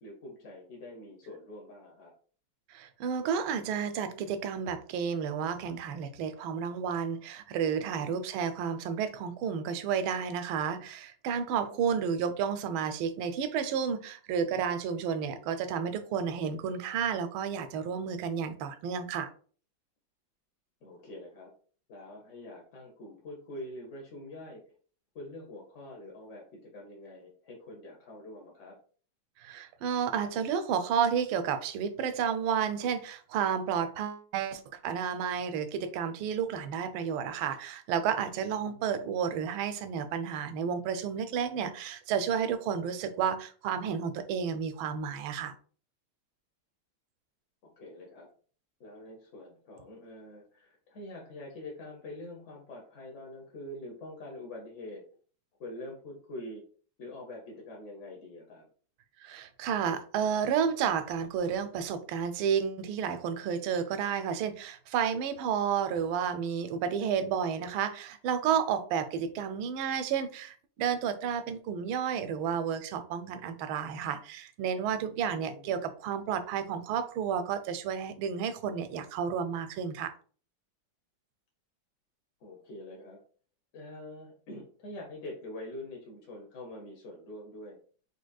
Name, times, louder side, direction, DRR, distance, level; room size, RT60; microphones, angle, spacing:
voice 1, 0.0-2.1 7.7-8.0 11.6-11.8 20.8-21.5 21.9-24.8 25.1-28.8 38.6-38.9 47.6-48.3 48.8-55.0 55.6-56.6 57.0-58.7 75.1-75.8 82.4-83.2 83.7-87.8, left 1 dB, 50° left, -1 dB, 0.9 m, -45 dB
voice 2, 2.7-19.3 29.4-45.5 59.2-80.1, right 7 dB, 85° right, 10 dB, 1.4 m, -31 dB
5.2 x 3.3 x 2.2 m, 0.43 s
omnidirectional pair, 2.2 m